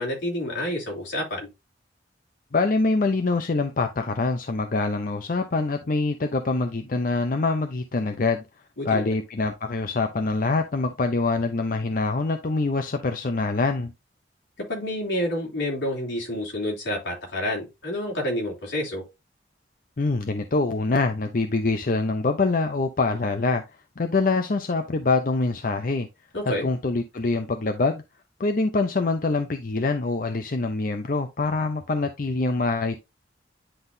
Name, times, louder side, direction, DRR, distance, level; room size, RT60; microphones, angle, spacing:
voice 1, 0.0-1.5 8.8-9.2 14.7-19.0 26.3-26.7, left 1 dB, 80° left, 2.9 m, -29 dB
voice 2, 2.5-8.4 8.8-13.9 20.0-23.6 24.0-26.1 26.6-28.0 28.4-33.0, left 3 dB, 45° left, 0.5 m, -24 dB
10.0 x 3.7 x 2.6 m
head